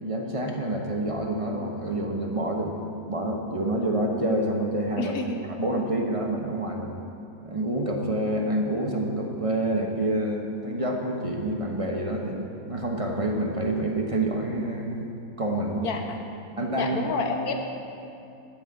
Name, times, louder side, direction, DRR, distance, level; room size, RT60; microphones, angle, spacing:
voice 1, 0.0-2.7 3.1-5.1 5.5-7.0 7.4-15.1 15.4-15.9 16.6-17.0, right 1 dB, 25° right, 1 dB, 0.9 m, -27 dB
voice 2, 5.0-5.5 15.8-16.2 16.8-17.5, left 4 dB, 70° left, 3 dB, 1.6 m, -29 dB
12.0 x 6.5 x 8.6 m, 2.6 s
omnidirectional pair, 1.7 m